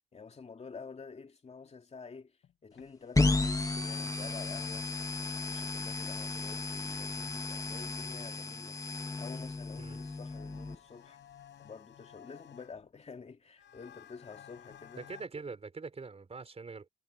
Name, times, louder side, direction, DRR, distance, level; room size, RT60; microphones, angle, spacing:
voice 1, 0.1-2.3 2.6-4.9 5.5-8.8 9.2-11.2 11.6-15.1, left 5 dB, 35° left, 2.7 m, -49 dB
sound 1, 2.4-2.9 3.3-3.4 3.9-4.7 5.0-5.9 7.1-8.3 9.0-9.1 9.5-13.0 13.6-15.3, left 10 dB, 65° left, 5.1 m, -57 dB
sound 2, 3.1-10.7, left 3 dB, 15° left, 1.8 m, -33 dB
voice 2, 15.0-16.9, right 4 dB, 30° right, 4.6 m, -43 dB
cardioid pair, 90°, 20 cm